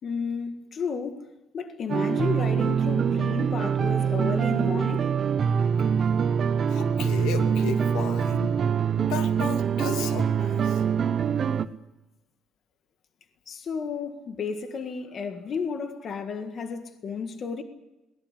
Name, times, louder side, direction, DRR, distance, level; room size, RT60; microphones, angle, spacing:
voice 1, 0.0-1.3 1.5-5.1 13.5-17.6, left 5 dB, 35° left, 1.7 m, -32 dB
sound 1, 1.9-11.7, right 7 dB, 35° right, 0.9 m, -24 dB
voice 2, 6.7-8.5 9.0-10.8, left 7 dB, 90° left, 2.8 m, -34 dB
22.5 x 18.5 x 8.3 m
cardioid pair, 170°, 0 cm